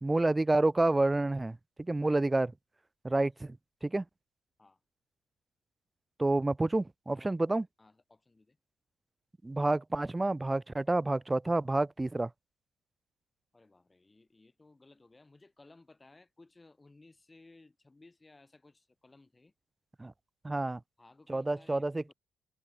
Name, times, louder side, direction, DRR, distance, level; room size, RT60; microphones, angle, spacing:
voice 1, 0.0-2.5 3.0-3.6 3.8-4.0 6.2-7.7 9.4-12.3 20.0-20.1 20.4-20.8 21.3-22.1, right 2 dB, 15° right, 0.3 m, -29 dB
voice 2, 7.8-8.6 13.5-19.5 21.0-22.1, left 2 dB, 15° left, 4.6 m, -59 dB
cardioid pair, 110°, 0 cm